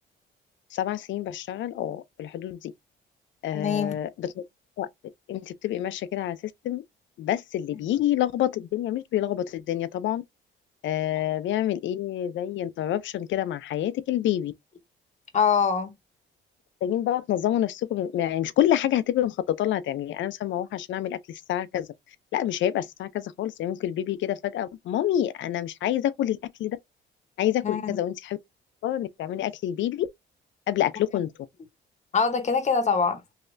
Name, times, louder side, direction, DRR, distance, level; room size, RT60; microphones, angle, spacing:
voice 1, 0.7-2.7 3.4-4.3 4.8-4.9 5.3-6.4 6.6-6.8 7.2-10.2 10.8-14.5 16.8-21.9 22.3-26.8 27.4-28.4 28.8-30.1 30.7-31.3, left 12 dB, 70° left, 0.5 m, -27 dB
voice 2, 3.5-3.9 15.3-15.9 27.6-28.0 32.1-33.2, left 6 dB, 35° left, 0.9 m, -24 dB
3.2 x 2.8 x 2.5 m
cardioid pair, 90°, 20 cm